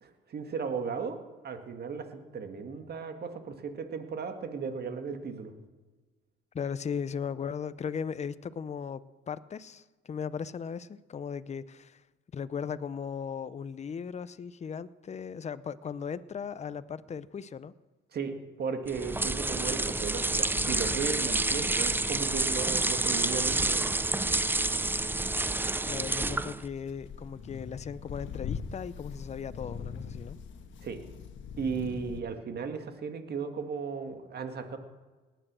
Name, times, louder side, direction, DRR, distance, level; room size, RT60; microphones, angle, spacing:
voice 1, 0.0-1.2 1.4-5.5 18.1-23.9 30.8-31.0 31.6-34.8, right 5 dB, 55° right, 7 dB, 1.9 m, -36 dB
voice 2, 6.5-12.0 12.3-17.7 25.9-30.4, left 7 dB, 35° left, 16 dB, 0.6 m, -37 dB
sound 1, 18.9-26.7, right 2 dB, 10° right, 0.5 m, -29 dB
sound 2, 20.6-32.2, left 6 dB, 75° left, 1.4 m, -43 dB
18.5 x 10.0 x 6.3 m, 1.3 s
cardioid pair, 90°, 20 cm